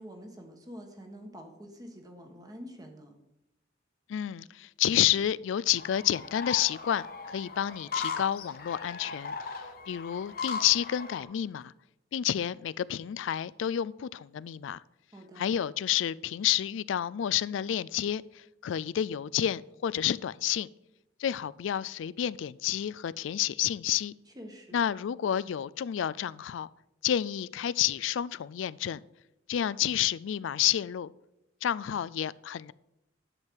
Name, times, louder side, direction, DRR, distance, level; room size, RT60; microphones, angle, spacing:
voice 1, 0.0-3.2 15.1-15.4 24.3-24.8, equal, 20° right, 1.2 m, -46 dB
voice 2, 4.1-9.5 9.9-11.7 12.1-14.8 15.4-20.7 21.2-24.1 24.7-26.7 27.0-29.0 29.5-31.1 31.6-32.7, left 10 dB, 80° left, 0.3 m, -30 dB
sound 1, 5.8-11.2, left 5 dB, 50° left, 1.0 m, -38 dB
10.5 x 7.5 x 4.6 m
head